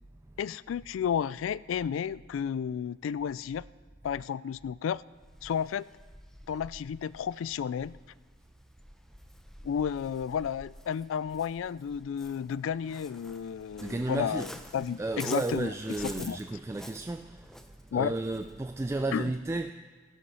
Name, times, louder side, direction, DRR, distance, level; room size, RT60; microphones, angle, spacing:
voice 1, 0.4-3.6 4.0-5.0 5.4-5.9 6.5-8.0 9.6-15.7 16.0-16.4 17.9-18.1 19.1-19.3, left 8 dB, 90° left, 0.3 m, -32 dB
Waves surf, 5.2-19.0, equal, ahead, 0.7 m, -50 dB
voice 2, 13.8-14.5 15.0-17.6 17.9-19.7, right 2 dB, 15° right, 0.3 m, -33 dB
15.0 x 11.5 x 5.5 m
head